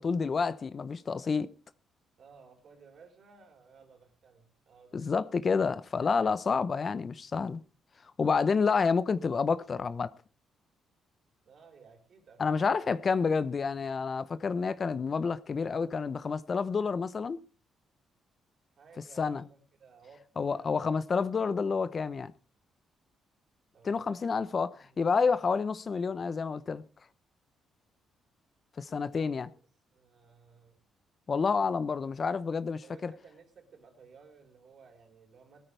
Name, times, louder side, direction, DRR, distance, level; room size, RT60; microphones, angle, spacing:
voice 1, 0.0-1.5 4.9-7.6 8.2-10.1 12.4-17.4 19.2-19.5 20.4-22.3 23.8-26.8 28.8-29.5 31.3-33.1, left 5 dB, 40° left, 0.8 m, -29 dB
voice 2, 2.2-5.1 11.4-12.7 18.8-20.9 23.7-25.5 29.1-29.4 29.9-30.8 32.8-35.6, right 5 dB, 60° right, 4.4 m, -57 dB
19.5 x 13.5 x 3.4 m
cardioid pair, 90°, 0 cm